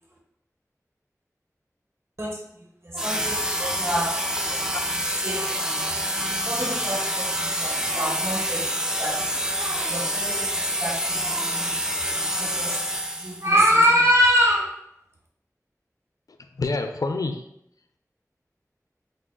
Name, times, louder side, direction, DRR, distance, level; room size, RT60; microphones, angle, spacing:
voice 1, 2.8-4.1 5.2-6.0 6.4-8.7 9.0-9.2 9.5-10.5 10.8-12.8 13.2-14.7, equal, 45° right, -2 dB, 0.9 m, -25 dB
sound 1, 3.0-13.5, equal, 10° right, 0.4 m, -27 dB
voice 2, 4.5-4.8 16.6-17.4, left 3 dB, 90° left, 6 dB, 0.3 m, -28 dB
5.3 x 3.7 x 2.2 m, 0.76 s
wide cardioid pair, 50°, 6 cm